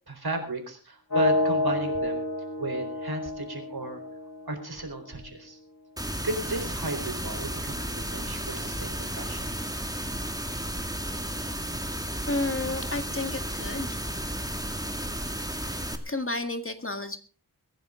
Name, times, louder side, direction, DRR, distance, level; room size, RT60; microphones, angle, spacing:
voice 1, 0.1-2.2 2.6-4.0 4.5-5.6 6.2-9.5, right 2 dB, 65° right, 5 dB, 4.2 m, -34 dB
sound 1, 1.1-5.0, left 2 dB, 45° left, 3.1 m, -29 dB
sound 2, 6.0-16.0, right 1 dB, 10° right, 2.1 m, -33 dB
voice 2, 12.3-14.0 15.6-17.2, left 2 dB, 30° left, 8 dB, 1.8 m, -32 dB
23.0 x 10.5 x 3.8 m, 0.36 s
wide cardioid pair, 50°, 41 cm